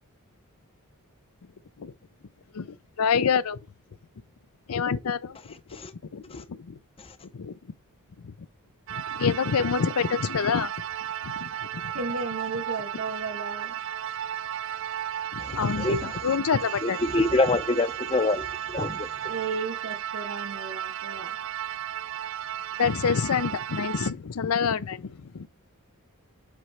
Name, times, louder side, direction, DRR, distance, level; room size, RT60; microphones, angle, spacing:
voice 1, 2.5-3.6 4.7-5.4 6.1-6.8 7.3-7.5 8.2-8.3 8.9-10.7 11.2-11.9 15.3-17.0 22.8-25.5, left 6 dB, 75° left, 0.5 m, -27 dB
sound 1, 8.9-24.1, right 10 dB, 60° right, 0.5 m, -34 dB
voice 2, 11.9-13.8 19.2-21.4, right 4 dB, 85° right, 1.7 m, -34 dB
voice 3, 15.4-16.0 16.8-19.1, left 2 dB, 25° left, 0.6 m, -26 dB
7.5 x 3.2 x 4.4 m
head